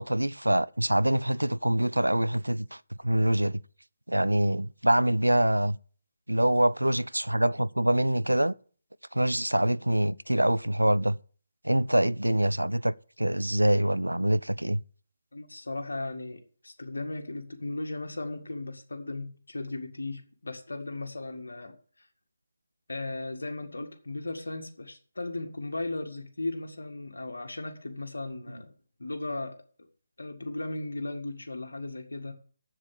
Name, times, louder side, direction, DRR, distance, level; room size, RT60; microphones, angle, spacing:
voice 1, 0.0-2.8 3.0-3.6 4.1-5.8 6.3-8.5 9.1-11.2 11.6-14.8, right 1 dB, 85° right, 0.4 m, -25 dB
voice 2, 15.3-22.1 22.9-28.7 29.0-29.6 30.2-32.3, left 2 dB, 70° left, 2.0 m, -36 dB
7.4 x 7.4 x 8.4 m
figure-of-eight pair, 150°, 0 cm